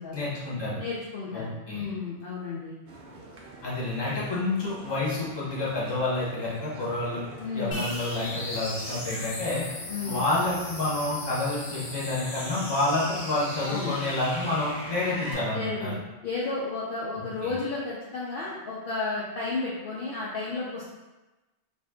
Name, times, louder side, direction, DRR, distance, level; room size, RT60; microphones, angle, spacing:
voice 1, 0.1-0.8 1.3-1.9 3.6-7.2 7.5-9.6 10.0-15.9 17.4-17.5, left 2 dB, 25° left, -7 dB, 0.8 m, -29 dB
voice 2, 0.8-2.8 7.4-7.8 9.9-10.2 13.7-14.0 15.5-15.9 16.2-20.8, left 3 dB, 60° left, -6 dB, 0.7 m, -32 dB
sound 1, 2.9-15.4, right 2 dB, 65° right, 0.8 m, -47 dB
sound 2, 7.7-15.3, left 1 dB, 80° left, 1.2 m, -38 dB
2.5 x 2.5 x 3.4 m, 1.1 s
omnidirectional pair, 1.1 m